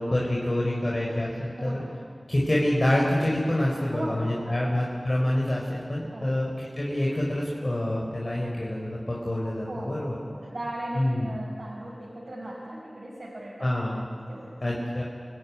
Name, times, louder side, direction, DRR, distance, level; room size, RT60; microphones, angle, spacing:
voice 1, 0.0-1.8 2.3-6.5 6.7-10.2 10.9-11.3 13.6-14.0 14.6-15.0, left 1 dB, 45° left, -4 dB, 4.7 m, -26 dB
voice 2, 1.6-1.9 3.9-4.6 6.1-6.3 9.7-13.7 14.3-14.5, right 1 dB, 75° right, -6 dB, 6.0 m, -37 dB
28.5 x 17.0 x 9.8 m, 2.1 s
wide cardioid pair, 45°, 0 cm